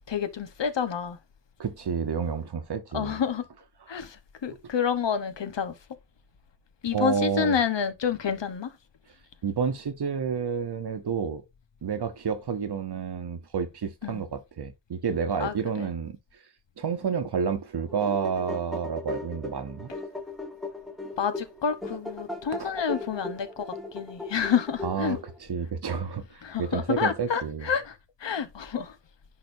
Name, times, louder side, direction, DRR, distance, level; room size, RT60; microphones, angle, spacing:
voice 1, 0.1-1.2 2.9-3.4 3.9-5.7 6.8-8.7 14.0-14.2 15.4-15.9 21.2-23.7 23.9-25.2 26.4-29.0, left 7 dB, 80° left, 1.1 m, -29 dB
voice 2, 1.6-3.2 3.9-4.0 6.9-7.6 9.4-11.4 11.8-16.5 16.8-19.9 22.6-22.7 24.8-27.7, right 6 dB, 65° right, 0.9 m, -30 dB
sound 1, 17.8-25.4, left 2 dB, ahead, 1.3 m, -38 dB
10.5 x 4.0 x 2.6 m
wide cardioid pair, 85°, 43 cm